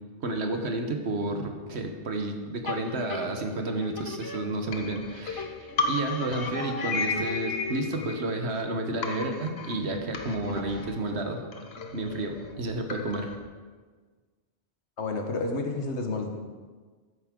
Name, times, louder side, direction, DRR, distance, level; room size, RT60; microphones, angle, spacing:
voice 1, 0.2-11.4 11.9-13.3, right 2 dB, 70° right, 4 dB, 1.4 m, -31 dB
sound 1, 2.6-5.0 5.4-8.2, left 6 dB, 30° left, 0.4 m, -40 dB
sound 2, 4.7-8.7 9.0-13.4, left 4 dB, 65° left, 1.2 m, -34 dB
voice 2, 15.0-16.3, left 3 dB, 80° left, 3 dB, 1.6 m, -30 dB
13.0 x 9.6 x 3.7 m, 1.5 s
omnidirectional pair, 1.1 m